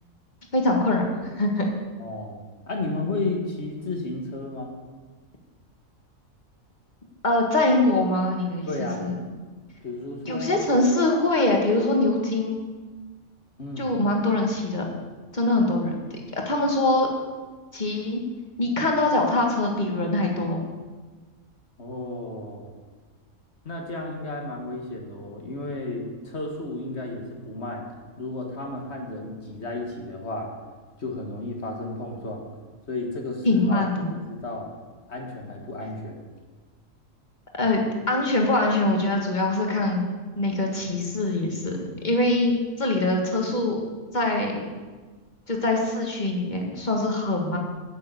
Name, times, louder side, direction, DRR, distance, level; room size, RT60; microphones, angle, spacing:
voice 1, 0.5-1.1 1.4-1.7 7.2-9.2 10.2-12.7 13.8-14.9 15.3-15.9 16.5-17.1 17.7-18.2 18.6-20.6 33.5-34.1 37.6-40.1 40.4-43.8 44.1-44.6 45.5-47.6, left 2 dB, 35° left, 1 dB, 2.0 m, -23 dB
voice 2, 2.0-2.4 2.7-4.7 8.7-9.0 9.8-10.7 13.6-13.9 21.8-22.8 23.6-27.8 28.2-30.5 31.0-32.4 32.9-33.9 34.3-34.7 35.1-36.3, left 2 dB, 50° left, 1 dB, 2.0 m, -33 dB
10.0 x 6.9 x 8.2 m, 1.3 s
omnidirectional pair, 1.4 m